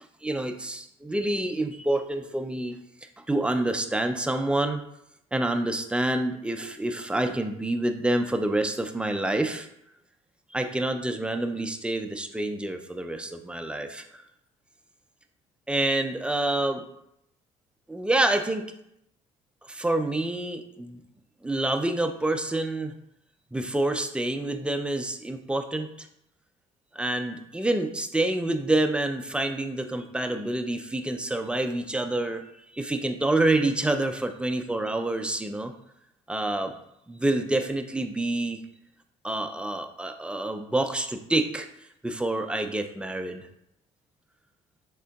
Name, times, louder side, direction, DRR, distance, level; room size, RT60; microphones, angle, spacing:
voice 1, 0.2-2.7 3.3-4.8 5.3-9.7 10.5-14.2 15.7-16.8 17.9-18.7 19.7-21.0 21.4-22.9 23.5-26.1 26.9-32.4 32.7-35.7 36.3-36.7 37.1-38.6 39.2-41.7 42.0-43.5, right 2 dB, 5° right, 6 dB, 0.4 m, -27 dB
3.7 x 3.5 x 2.3 m, 0.77 s
supercardioid pair, 65°, 15 cm